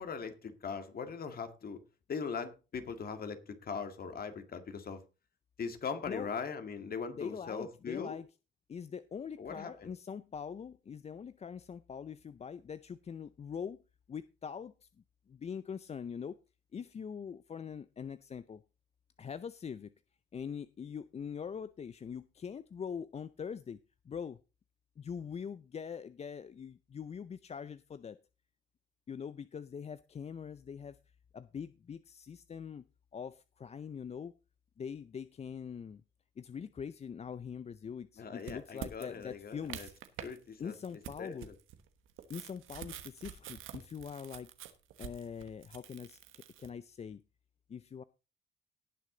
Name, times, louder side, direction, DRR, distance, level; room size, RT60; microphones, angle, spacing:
voice 1, 0.0-1.8 2.1-5.0 5.6-8.2 9.4-9.9 38.2-39.9 40.2-40.8 41.2-41.5, left 5 dB, 50° left, 2.0 m, -40 dB
voice 2, 7.1-8.3 8.7-13.8 14.1-14.9 15.3-16.4 16.7-18.6 19.2-19.9 20.3-23.8 24.1-24.4 25.0-28.2 29.1-31.0 31.3-32.8 33.1-34.3 34.8-36.0 36.4-39.9 40.6-41.5 42.3-44.5 45.0-47.2 47.7-48.0, left 7 dB, 35° left, 0.5 m, -43 dB
sound 1, 38.4-40.4 40.7-46.7, right 11 dB, 90° right, 1.3 m, -47 dB
18.0 x 6.4 x 3.9 m
cardioid pair, 90°, 20 cm